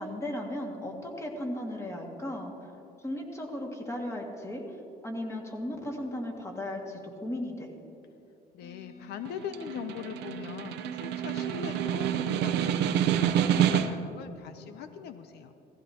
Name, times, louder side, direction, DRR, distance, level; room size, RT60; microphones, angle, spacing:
voice 1, 0.0-2.5 3.0-4.8 5.0-7.7, left 1 dB, 15° left, 1 dB, 1.9 m, -36 dB
voice 2, 8.5-15.5, left 8 dB, 75° left, 9 dB, 0.6 m, -41 dB
sound 1, 8.6-14.2, left 3 dB, 45° left, 0.8 m, -51 dB
Snare drum, 9.3-14.2, right 10 dB, 85° right, 0.7 m, -28 dB
16.5 x 15.0 x 2.9 m, 2.8 s
cardioid pair, 110°, 17 cm